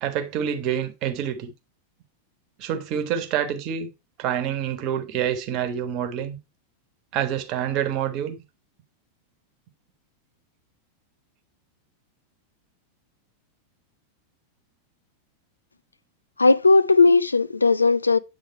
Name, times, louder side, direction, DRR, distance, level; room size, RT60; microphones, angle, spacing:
voice 1, 0.0-1.5 2.6-3.9 4.2-6.4 7.1-8.4, right 9 dB, 40° right, 1.2 m, -27 dB
voice 2, 16.4-18.2, left 3 dB, 80° left, 0.3 m, -17 dB
8.4 x 3.7 x 4.4 m
figure-of-eight pair, 90°, 0 cm